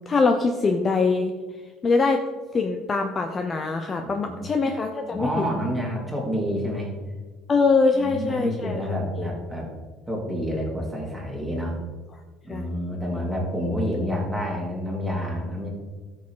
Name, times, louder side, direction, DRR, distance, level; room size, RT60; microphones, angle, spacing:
voice 1, 0.1-1.3 1.8-2.2 2.5-5.4 7.5-8.8 9.2-9.3 12.5-12.7, left 4 dB, 25° left, 5 dB, 0.7 m, -23 dB
voice 2, 4.0-4.5 5.1-6.9 7.9-9.7 10.1-11.8 12.4-15.7, equal, 5° right, -3 dB, 3.0 m, -28 dB
13.5 x 6.5 x 3.9 m, 1.4 s
cardioid pair, 135°, 0 cm